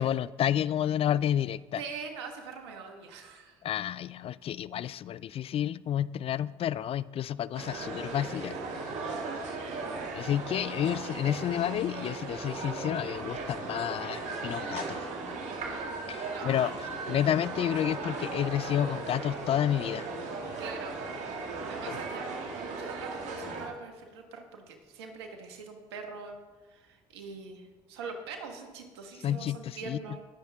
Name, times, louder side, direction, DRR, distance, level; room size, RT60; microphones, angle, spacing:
voice 1, 0.0-1.8 3.6-8.6 10.1-15.0 16.1-16.7 17.1-20.1 21.9-22.0 29.2-30.0, left 10 dB, 45° left, 19 dB, 0.4 m, -30 dB
voice 2, 1.8-3.6 11.2-11.4 16.3-16.7 20.6-21.0 21.6-26.4 26.7-30.3, right 5 dB, 85° right, 4 dB, 1.6 m, -43 dB
sound 1, 7.5-23.7, right 3 dB, 60° right, 2.4 m, -37 dB
19.5 x 7.3 x 3.6 m, 1.3 s
hypercardioid pair, 65°, 13 cm